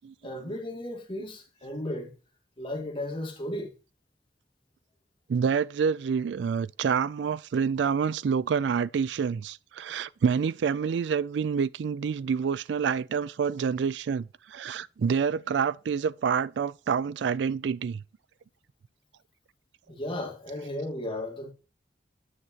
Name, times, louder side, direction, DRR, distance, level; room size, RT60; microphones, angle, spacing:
voice 1, 0.2-2.1 2.6-3.8 19.9-21.5, left 1 dB, 30° left, 2.0 m, -35 dB
voice 2, 5.3-18.0, right 6 dB, 75° right, 0.3 m, -27 dB
9.6 x 7.6 x 2.9 m
head